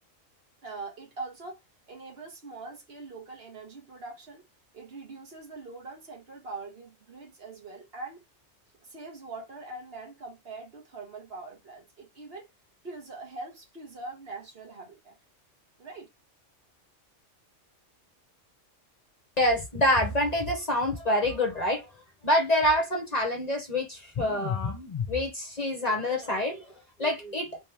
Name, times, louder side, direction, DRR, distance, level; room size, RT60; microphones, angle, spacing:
voice 1, 0.6-1.6 1.9-4.4 4.7-8.2 8.8-12.5 12.8-15.2 15.8-16.1, right 3 dB, 55° right, 1.4 m, -42 dB
voice 2, 19.4-21.9 22.2-27.6, left 1 dB, 40° left, 0.8 m, -26 dB
3.2 x 3.0 x 3.3 m
omnidirectional pair, 1.3 m